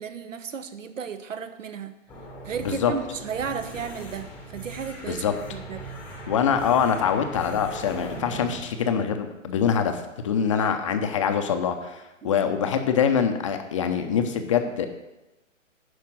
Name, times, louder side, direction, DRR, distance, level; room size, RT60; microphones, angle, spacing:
voice 1, 0.0-1.9 2.4-5.2 5.5-5.9 10.6-10.7 12.2-12.4, right 6 dB, 75° right, 11 dB, 1.0 m, -34 dB
sound 1, 2.1-8.6, right 1 dB, 5° left, 0.9 m, -40 dB
voice 2, 6.3-14.9, left 7 dB, 25° left, 6 dB, 0.6 m, -24 dB
10.5 x 5.0 x 6.2 m, 1.0 s
hypercardioid pair, 145°, 39 cm